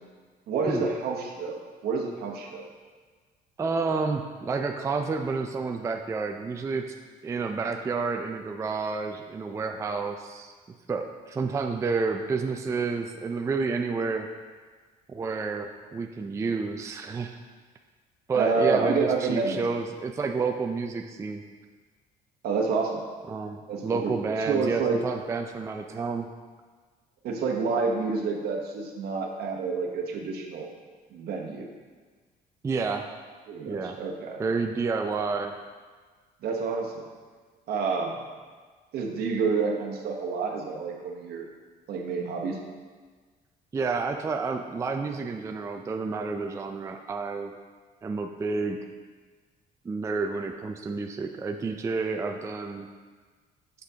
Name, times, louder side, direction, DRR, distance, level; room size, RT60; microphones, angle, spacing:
voice 1, 0.5-2.6 18.3-19.6 22.4-23.0 23.7-25.0 27.2-30.7 31.1-31.7 33.5-34.4 36.4-37.0 37.7-38.1 38.9-41.5 41.9-42.6, right 4 dB, 70° right, 1 dB, 0.9 m, -28 dB
voice 2, 3.6-6.8 7.2-10.5 10.9-14.3 15.1-17.4 18.3-21.4 23.3-26.3 32.6-33.1 33.7-34.0 34.4-35.6 43.7-47.5 48.0-48.8 49.8-52.9, right 4 dB, 15° right, 5 dB, 0.3 m, -30 dB
6.6 x 5.9 x 2.8 m, 1.5 s
cardioid pair, 110°, 17 cm